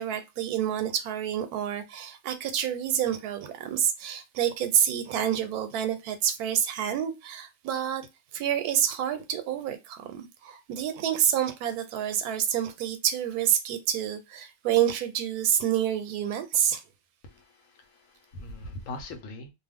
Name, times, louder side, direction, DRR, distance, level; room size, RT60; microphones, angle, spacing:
voice 1, 0.0-8.1 8.3-16.8, right 9 dB, 85° right, 1.1 m, -28 dB
voice 2, 17.2-19.5, left 2 dB, 65° left, 1.0 m, -41 dB
2.5 x 2.3 x 3.4 m
omnidirectional pair, 1.6 m